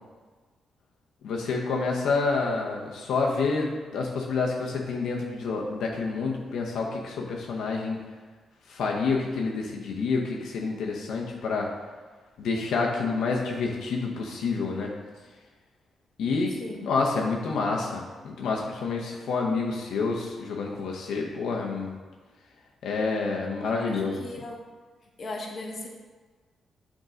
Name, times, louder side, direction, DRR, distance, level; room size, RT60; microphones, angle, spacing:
voice 1, 1.2-8.0 8.7-11.7 12.4-14.9 16.2-16.6 16.8-21.9 22.8-24.2, left 4 dB, 85° left, -1 dB, 0.8 m, -28 dB
voice 2, 23.6-24.6 25.2-25.9, left 2 dB, 45° left, 0 dB, 1.2 m, -37 dB
6.5 x 3.7 x 5.0 m, 1.4 s
cardioid pair, 100°, 0 cm